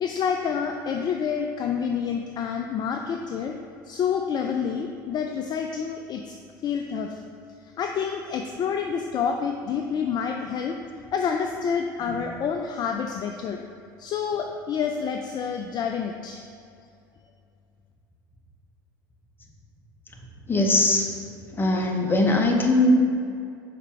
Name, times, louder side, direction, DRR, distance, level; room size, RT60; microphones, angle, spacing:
voice 1, 0.0-3.5 3.9-6.3 6.6-7.2 7.8-10.8 11.1-13.6 14.0-16.4, left 6 dB, 40° left, 4 dB, 0.4 m, -28 dB
voice 2, 20.5-21.1 21.6-23.0, left 1 dB, 20° left, 2 dB, 0.9 m, -20 dB
5.7 x 4.2 x 4.7 m, 2.4 s
hypercardioid pair, 75°, 11 cm